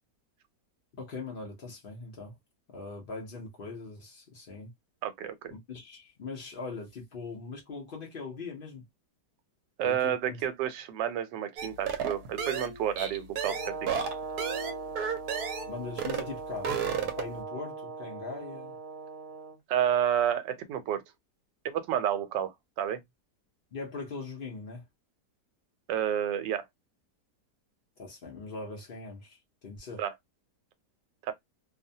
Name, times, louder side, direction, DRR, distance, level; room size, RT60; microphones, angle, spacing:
voice 1, 1.0-2.4 2.7-4.7 5.5-8.9 9.8-10.4 15.7-18.8 23.7-24.8 28.0-29.4 29.6-30.0, left 3 dB, 85° left, 0.4 m, -41 dB
voice 2, 5.0-5.5 9.8-13.9 19.7-21.0 21.6-23.0 25.9-26.6 30.0-30.1 31.2-31.3, right 10 dB, 85° right, 1.2 m, -30 dB
sound 1, 11.6-15.7 16.0-16.3 16.5-17.4, right 7 dB, 70° right, 1.1 m, -32 dB
Brass instrument, 13.4-19.6, right 4 dB, 55° right, 0.8 m, -40 dB
2.8 x 2.1 x 2.6 m
omnidirectional pair, 1.9 m